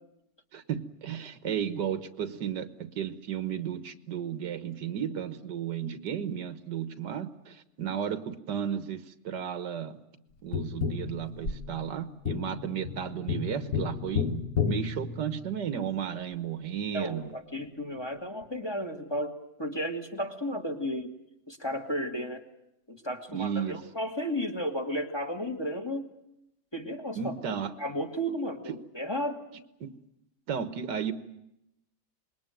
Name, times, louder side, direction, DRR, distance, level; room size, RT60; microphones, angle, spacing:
voice 1, 0.5-10.0 10.4-17.3 23.3-23.8 27.2-27.7 29.8-29.9 30.5-31.1, right 8 dB, 90° right, 12 dB, 2.0 m, -34 dB
Tap, 10.5-15.8 18.4-18.5, left 7 dB, 60° left, 1.7 m, -33 dB
voice 2, 16.9-19.3 19.6-21.1 21.5-22.4 22.9-26.0 26.7-29.4, equal, 15° left, 5 dB, 2.3 m, -33 dB
26.5 x 21.5 x 9.2 m, 0.83 s
omnidirectional pair, 1.8 m